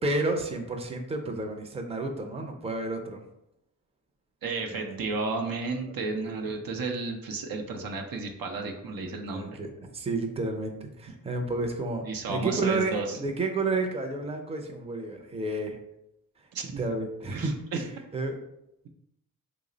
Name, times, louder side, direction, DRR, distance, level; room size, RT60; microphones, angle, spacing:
voice 1, 0.0-3.2 4.6-5.0 6.1-6.3 8.8-15.8 16.8-17.8 18.1-18.4, right 2 dB, 20° right, 3 dB, 0.5 m, -31 dB
voice 2, 4.4-9.6 12.0-13.2 16.5-16.9 17.3-17.9, right 3 dB, 80° right, 3 dB, 0.6 m, -32 dB
3.2 x 2.0 x 3.7 m, 0.82 s
cardioid pair, 65°, 35 cm